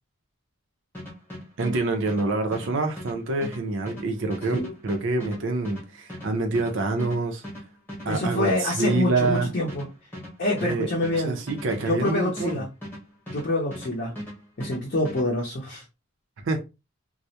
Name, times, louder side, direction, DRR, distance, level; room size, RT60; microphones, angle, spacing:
sound 1, 0.9-13.9 14.2-15.3, equal, 10° left, 0.9 m, -38 dB
voice 1, 1.6-7.4 8.0-9.5 10.6-10.9 11.2-12.6 16.4-16.6, right 3 dB, 55° right, 0.5 m, -26 dB
voice 2, 8.1-9.9 10.4-11.4 11.9-12.7 13.3-14.2 14.6-15.8, left 1 dB, 40° left, 0.6 m, -26 dB
2.3 x 2.0 x 2.7 m
head